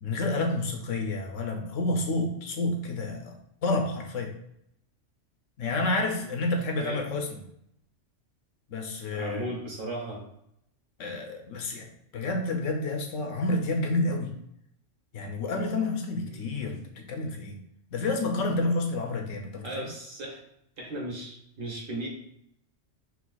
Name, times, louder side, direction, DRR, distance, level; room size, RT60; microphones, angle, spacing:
voice 1, 0.0-4.3 5.6-7.4 8.7-9.5 11.0-11.9 12.1-14.3 15.1-16.8 17.1-17.6 17.9-19.9, left 2 dB, 80° left, 3 dB, 1.1 m, -29 dB
voice 2, 9.1-10.2 16.3-16.5 19.6-20.4 20.8-22.1, right 1 dB, 50° right, -2 dB, 1.5 m, -36 dB
4.2 x 2.5 x 3.9 m, 0.75 s
omnidirectional pair, 1.3 m